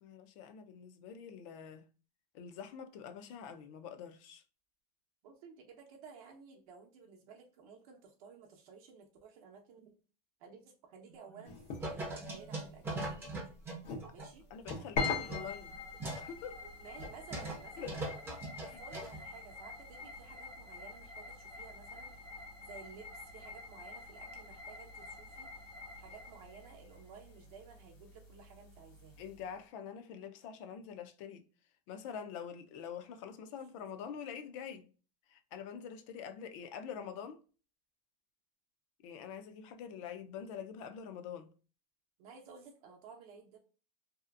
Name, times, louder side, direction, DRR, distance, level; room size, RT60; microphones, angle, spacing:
voice 1, 0.0-1.9 2.3-4.4 14.5-15.8 16.1-16.6 17.8-18.0 29.2-31.4 31.9-34.9 35.3-37.4 39.0-41.5, left 7 dB, 50° left, 0.4 m, -45 dB
voice 2, 5.2-10.0 10.4-13.2 14.1-14.5 15.0-15.4 16.8-18.2 18.6-22.2 22.6-25.5 26.0-29.3 42.2-43.6, right 5 dB, 60° right, 0.7 m, -55 dB
sound 1, 11.1-11.5 11.8-14.3 14.7-16.3 16.6-16.7 17.0-17.6 17.9-19.2, right 2 dB, 10° right, 0.5 m, -41 dB
sound 2, 11.4-18.0, left 4 dB, 90° left, 0.8 m, -44 dB
sound 3, 15.0-29.4, left 4 dB, 70° left, 1.4 m, -46 dB
2.7 x 2.4 x 2.3 m
supercardioid pair, 160°, 21 cm